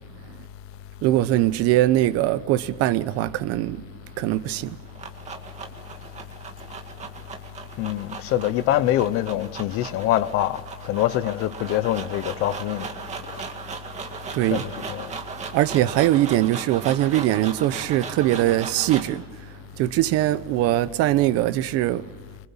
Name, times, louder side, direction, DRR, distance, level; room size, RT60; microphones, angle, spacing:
voice 1, 1.0-3.8 4.2-4.8 14.3-14.7 15.5-19.2 19.8-22.0, right 14 dB, 50° right, 0.9 m, -21 dB
sound 1, 4.6-19.2, right 5 dB, 20° right, 2.1 m, -37 dB
voice 2, 7.8-12.9 14.5-15.1, left 13 dB, 45° left, 0.9 m, -24 dB
25.5 x 25.0 x 7.3 m
cardioid pair, 180°, 30 cm